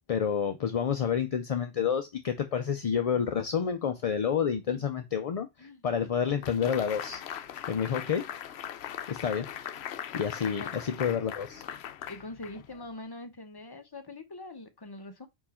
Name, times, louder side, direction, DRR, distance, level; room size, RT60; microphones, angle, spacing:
voice 1, 0.1-7.2 7.7-8.3 9.1-9.5 10.1-11.6, left 7 dB, 45° left, 0.5 m, -29 dB
sound 1, 6.4-12.9, left 10 dB, 80° left, 0.8 m, -40 dB
voice 2, 10.4-10.7 12.1-15.3, left 2 dB, 25° left, 0.9 m, -43 dB
5.0 x 4.5 x 4.3 m
omnidirectional pair, 1.1 m